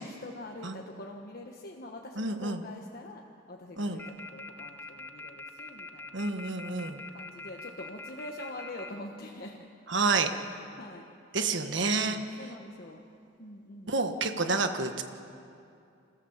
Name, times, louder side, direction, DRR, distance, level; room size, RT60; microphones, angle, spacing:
voice 1, 0.0-3.2 3.5-6.2 7.1-9.6 10.8-11.1 12.0-13.0 13.4-14.0, left 1 dB, 55° left, 1 dB, 1.3 m, -44 dB
voice 2, 2.1-2.6 3.8-4.0 6.1-7.0 9.9-10.3 11.3-12.2 13.9-15.0, right 3 dB, 70° right, 7 dB, 1.5 m, -29 dB
sound 1, 4.0-8.9, left 3 dB, 10° left, 1.0 m, -43 dB
27.5 x 14.5 x 7.3 m, 2.5 s
head